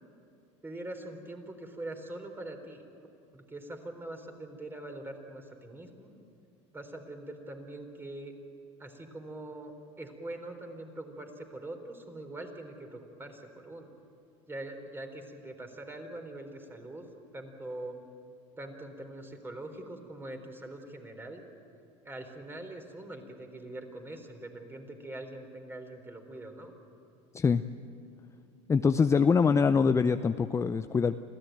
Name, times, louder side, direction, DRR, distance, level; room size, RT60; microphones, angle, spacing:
voice 1, 0.6-2.8 3.3-6.1 6.7-8.3 8.8-13.9 14.5-17.1 17.3-18.0 18.6-21.5 22.0-26.7, right 1 dB, 15° right, 5 dB, 3.9 m, -43 dB
voice 2, 28.7-31.1, left 5 dB, 20° left, 10 dB, 0.6 m, -24 dB
26.5 x 16.0 x 9.3 m, 2.5 s
supercardioid pair, 100°, 16 cm